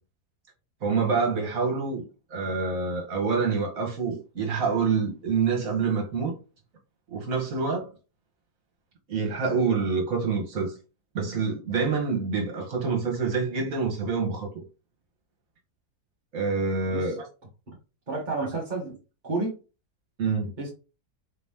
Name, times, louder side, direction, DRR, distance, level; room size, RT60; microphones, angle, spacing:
voice 1, 0.8-2.0 2.3-6.4 7.1-7.9 9.1-10.8 11.1-14.5 16.3-17.2 20.2-20.5, right 5 dB, 55° right, 1.7 m, -26 dB
voice 2, 18.1-19.0 19.2-19.6 20.6-20.7, right 3 dB, 30° right, 1.2 m, -30 dB
4.2 x 3.0 x 3.5 m
omnidirectional pair, 1.7 m